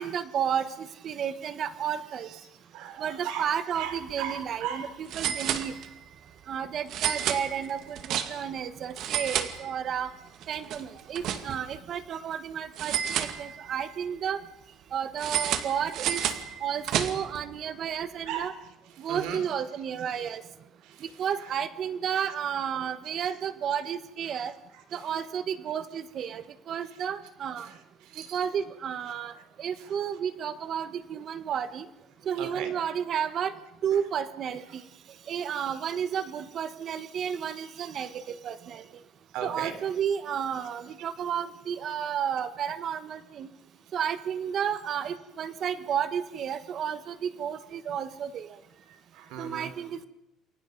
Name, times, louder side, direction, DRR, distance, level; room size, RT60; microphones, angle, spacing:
voice 1, 0.0-2.3 3.0-4.9 5.2-5.7 6.5-10.1 10.5-14.4 14.9-16.2 16.6-18.5 19.0-20.4 21.2-24.5 24.9-27.7 28.3-29.3 29.6-31.8 32.3-33.5 33.8-34.8 35.3-38.8 39.4-43.5 43.9-48.5 49.4-50.1, right 8 dB, 50° right, 12 dB, 1.4 m, -32 dB
voice 2, 2.2-5.2 18.2-19.5 19.7-20.4 20.8-21.5 22.1-22.3 23.2-23.4 23.8-23.9 24.2-25.3 25.9-26.0 26.8-27.3 27.6-28.5 29.0-29.4 29.7-30.0 31.5-31.8 32.3-33.0 33.3-33.4 33.9-34.1 34.6-34.7 39.3-39.7 48.7-49.7, right 8 dB, 80° right, 8 dB, 4.0 m, -40 dB
sound 1, 3.9-4.1 4.4-4.5 5.1-6.1 6.9-8.6 8.9-10.1 10.4-11.8 12.8-13.9 15.2-17.4, right 9 dB, 65° right, 2.1 m, -31 dB
28.5 x 23.0 x 5.4 m, 0.86 s
cardioid pair, 125°, 0 cm